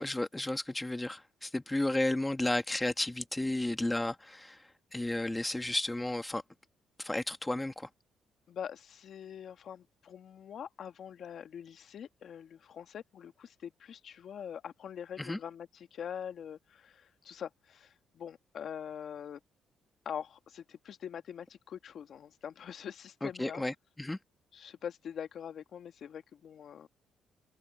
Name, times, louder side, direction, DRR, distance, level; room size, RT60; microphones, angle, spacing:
voice 1, 0.0-6.4 7.0-7.9 15.2-15.4 23.2-24.2, left 1 dB, 10° left, 1.7 m, -33 dB
voice 2, 8.5-19.4 20.0-23.6 24.5-26.9, left 8 dB, 60° left, 1.7 m, -44 dB
open air
cardioid pair, 90°, 0 cm